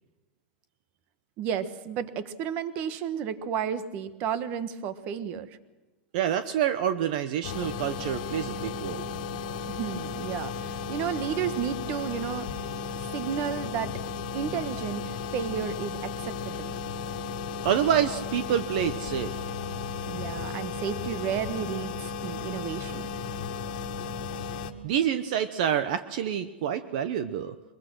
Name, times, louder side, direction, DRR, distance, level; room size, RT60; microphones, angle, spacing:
voice 1, 1.4-5.5 9.8-12.5 13.1-14.0 14.3-16.7 20.1-23.1, right 8 dB, 30° right, 12 dB, 1.3 m, -32 dB
voice 2, 6.1-9.0 17.6-19.5 24.8-27.5, right 9 dB, 50° right, 11 dB, 0.9 m, -27 dB
sound 1, 7.4-24.7, left 5 dB, 50° left, 1.8 m, -35 dB
23.5 x 22.0 x 6.3 m, 1.2 s
supercardioid pair, 175°, 5 cm